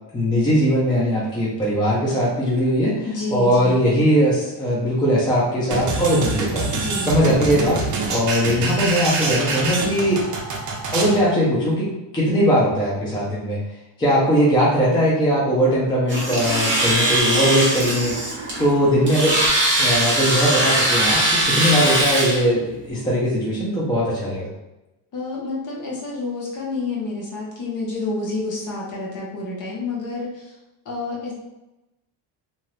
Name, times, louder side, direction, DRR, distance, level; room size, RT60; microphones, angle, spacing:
voice 1, 0.1-3.1 3.3-6.6 7.1-7.8 8.1-10.2 10.9-13.6 14.0-18.2 18.6-19.4 19.8-24.5, equal, 10° left, -7 dB, 0.5 m, -20 dB
voice 2, 3.0-3.8 6.7-7.1 25.1-30.6 30.8-31.3, left 3 dB, 45° left, -4 dB, 1.0 m, -29 dB
sound 1, 5.7-11.2, right 3 dB, 45° right, 0.6 m, -25 dB
Domestic sounds home sounds, 16.1-22.4, right 1 dB, 25° right, 1.0 m, -21 dB
2.8 x 2.4 x 3.1 m, 0.98 s
cardioid pair, 165°, 44 cm